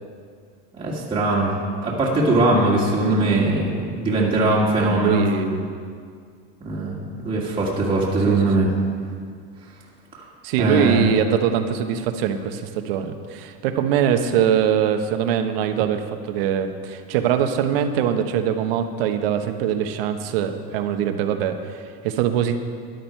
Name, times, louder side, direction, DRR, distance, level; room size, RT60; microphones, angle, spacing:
voice 1, 0.8-1.5 1.8-5.2 6.6-8.7 10.1-10.2 10.6-11.0, right 2 dB, 15° right, -5 dB, 2.0 m, -21 dB
voice 2, 4.8-5.7 8.3-8.5 10.4-22.6, right 8 dB, 75° right, 7 dB, 1.2 m, -22 dB
13.5 x 11.0 x 4.6 m, 2.1 s
supercardioid pair, 150°, 30 cm